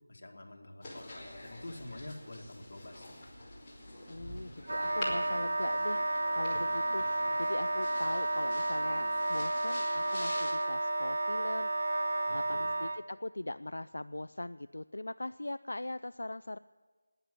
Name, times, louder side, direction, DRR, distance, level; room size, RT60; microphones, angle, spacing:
voice 1, 0.1-3.2 12.3-12.7, left 1 dB, 55° left, 1 dB, 2.1 m, -47 dB
sound 1, 0.8-10.5, left 1 dB, 10° left, 2.6 m, -46 dB
voice 2, 4.1-11.8 12.3-16.6, left 2 dB, 80° left, 13 dB, 0.3 m, -41 dB
Wind instrument woodwind instrument, 4.6-13.0, right 1 dB, 55° right, 0.6 m, -32 dB
12.5 x 9.9 x 9.8 m, 1.4 s
figure-of-eight pair, 175°, 0 cm